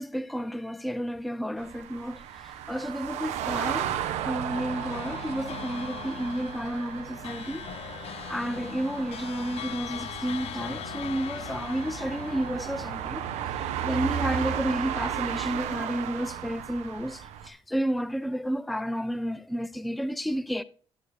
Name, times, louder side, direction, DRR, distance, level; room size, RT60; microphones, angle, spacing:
voice 1, 0.0-7.7 8.0-20.6, equal, ahead, 0.5 m, -31 dB
sound 1, 1.6-17.5, right 10 dB, 80° right, 1.1 m, -35 dB
sound 2, 4.5-14.2, left 11 dB, 65° left, 0.5 m, -41 dB
13.5 x 7.8 x 2.8 m
supercardioid pair, 60°, 11 cm